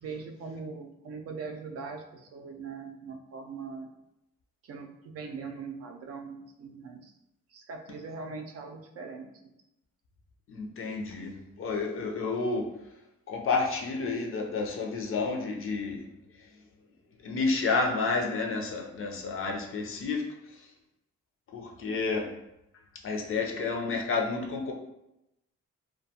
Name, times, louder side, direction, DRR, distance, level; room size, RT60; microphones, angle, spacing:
voice 1, 0.0-3.9 4.6-7.1 7.5-9.3, right 4 dB, 55° right, 3 dB, 0.4 m, -41 dB
voice 2, 10.5-12.7 13.3-16.1 16.4-16.5 17.2-20.3 20.5-20.7 21.5-22.3 23.0-24.7, left 4 dB, 45° left, 1 dB, 0.5 m, -30 dB
2.3 x 2.2 x 2.7 m, 0.88 s
cardioid pair, 90°, 30 cm